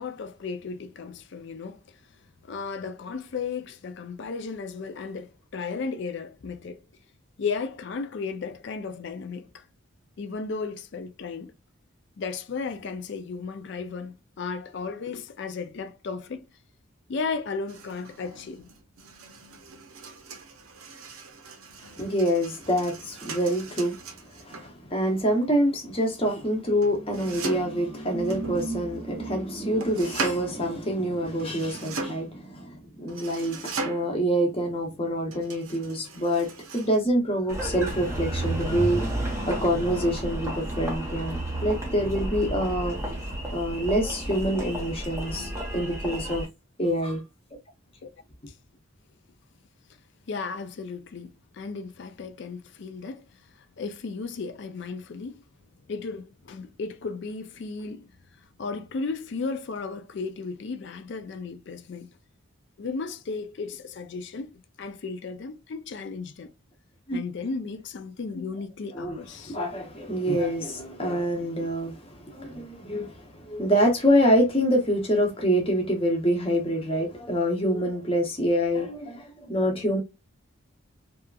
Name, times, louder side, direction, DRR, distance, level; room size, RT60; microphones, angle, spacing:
voice 1, 0.0-2.0 2.4-6.8 7.4-9.7 10.2-11.5 12.2-16.5 17.1-18.7 48.0-48.1 50.3-53.2 53.6-55.4 55.9-62.1 62.8-66.5 67.1-69.6, left 4 dB, 55° left, 0.4 m, -35 dB
sound 1, 17.7-24.7 26.8-27.8 28.2-29.2 29.8-30.5 31.4-32.3 33.1-34.2 35.3-37.0, right 3 dB, 85° right, 0.7 m, -38 dB
voice 2, 22.0-24.0 24.4-39.0 39.3-43.0 43.5-46.5 46.8-47.2 67.1-67.2 68.9-80.0, equal, 25° left, 0.7 m, -26 dB
Engine, 37.5-46.5, right 1 dB, 10° right, 0.8 m, -32 dB
2.8 x 2.3 x 2.3 m
head